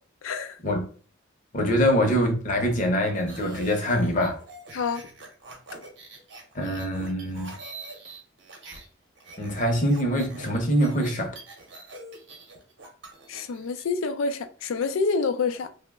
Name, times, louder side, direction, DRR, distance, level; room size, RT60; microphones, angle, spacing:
voice 1, 0.2-0.6 4.7-5.1 13.3-15.7, left 4 dB, 80° left, 0.4 m, -27 dB
voice 2, 1.5-4.4 6.5-7.5 9.4-11.3, equal, 40° left, 0.7 m, -24 dB
sound 1, 3.0-8.9 9.1-13.8, right 2 dB, 60° right, 0.7 m, -44 dB
2.9 x 2.1 x 3.4 m
head